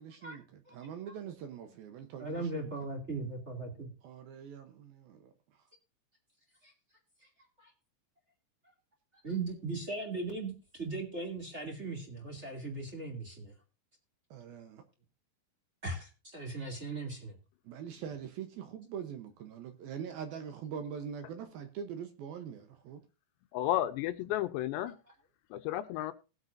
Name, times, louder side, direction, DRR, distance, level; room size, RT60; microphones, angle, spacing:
voice 1, 0.0-2.7 4.0-5.3 14.3-14.8 17.7-23.0, right 8 dB, 70° right, 2.5 m, -43 dB
voice 2, 2.2-3.9 6.6-6.7 7.6-7.7 9.2-13.5 15.8-17.3 24.8-24.9, right 3 dB, 20° right, 1.9 m, -38 dB
voice 3, 23.5-24.9 25.5-26.1, left 13 dB, 85° left, 2.9 m, -32 dB
19.5 x 8.1 x 2.6 m
omnidirectional pair, 5.1 m